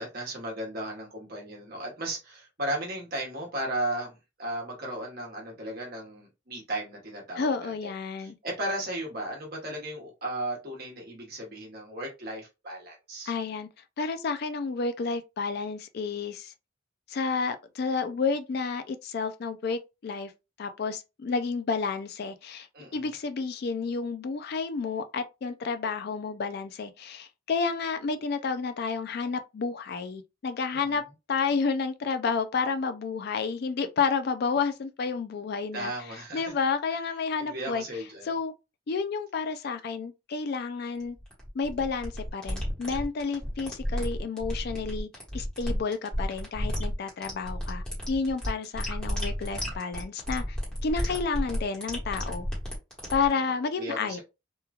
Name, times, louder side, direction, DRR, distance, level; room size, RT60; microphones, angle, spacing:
voice 1, 0.0-7.9 8.2-13.3 22.7-23.1 30.9-31.0 35.7-36.5 37.4-38.3 53.3-53.4 53.8-54.2, right 1 dB, 50° right, 1.1 m, -35 dB
voice 2, 7.4-8.4 13.3-13.7 14.0-16.5 17.1-20.3 20.6-22.7 22.9-31.0 31.3-35.9 36.3-37.8 38.3-38.5 38.9-41.2 41.5-45.1 45.3-50.6 50.8-52.5 53.1-54.2, left 5 dB, 50° left, 0.3 m, -30 dB
sound 1, 41.0-53.3, equal, 5° left, 1.1 m, -32 dB
3.0 x 2.3 x 2.3 m
head